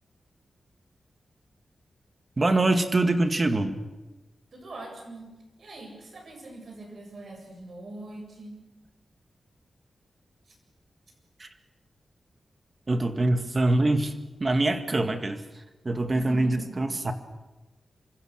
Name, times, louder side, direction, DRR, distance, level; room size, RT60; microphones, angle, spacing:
voice 1, 2.4-3.8 11.4-11.5 12.9-14.1 14.4-15.4 15.8-17.1, right 2 dB, 30° right, 7 dB, 2.1 m, -24 dB
voice 2, 4.5-8.6 10.5-10.6 16.1-16.8, right 2 dB, 55° right, 2 dB, 7.4 m, -42 dB
27.5 x 25.0 x 6.5 m, 1.1 s
wide cardioid pair, 150°, 0 cm